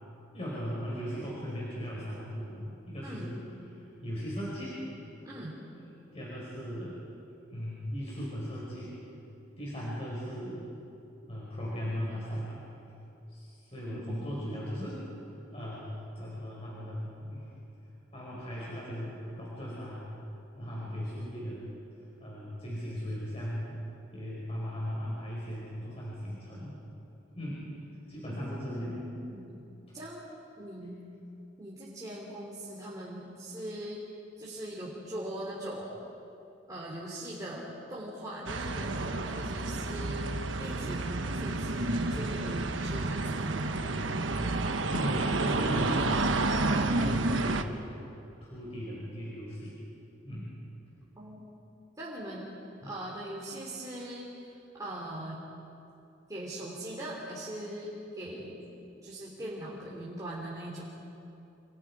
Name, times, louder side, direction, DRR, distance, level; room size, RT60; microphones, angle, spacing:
voice 1, 0.3-3.4 3.8-4.8 5.7-7.0 7.5-8.9 9.6-10.6 11.3-12.6 13.3-15.0 15.5-17.5 18.1-20.1 20.6-21.7 22.2-23.8 24.1-26.7 27.3-27.7 28.1-29.0 44.9-46.0 46.6-47.8 48.4-49.8 50.2-50.6 52.7-52.9, equal, 35° left, -6 dB, 5.4 m, -37 dB
voice 2, 5.2-5.6 13.9-14.3 28.3-29.5 29.9-30.3 30.6-31.0 31.6-34.1 34.4-35.9 36.7-40.3 40.6-43.7 51.2-51.4 52.0-52.5 52.8-54.3 54.7-55.4 56.3-58.6 59.0-60.9, right 1 dB, 20° right, -6 dB, 3.6 m, -41 dB
sound 1, 38.5-47.6, right 2 dB, 85° right, 1.2 m, -30 dB
28.0 x 27.5 x 5.0 m, 2.8 s
head